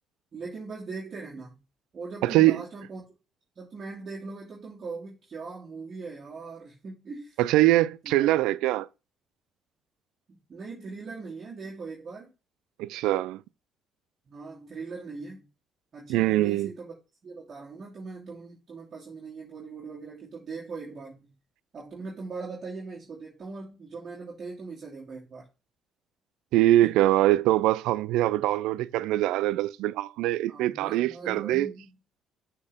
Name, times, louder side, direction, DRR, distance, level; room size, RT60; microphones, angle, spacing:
voice 1, 0.3-1.6 1.9-3.0 3.6-7.4 8.0-8.3 10.5-12.3 14.3-15.5 15.9-16.9 17.2-21.3 21.7-25.4 26.8-27.0 30.5-31.9, right 4 dB, 45° right, 2.5 m, -40 dB
voice 2, 2.2-2.6 7.4-8.9 12.8-13.4 16.1-16.7 26.5-31.7, right 15 dB, 80° right, 0.3 m, -23 dB
6.6 x 4.3 x 3.6 m
supercardioid pair, 70°, 0 cm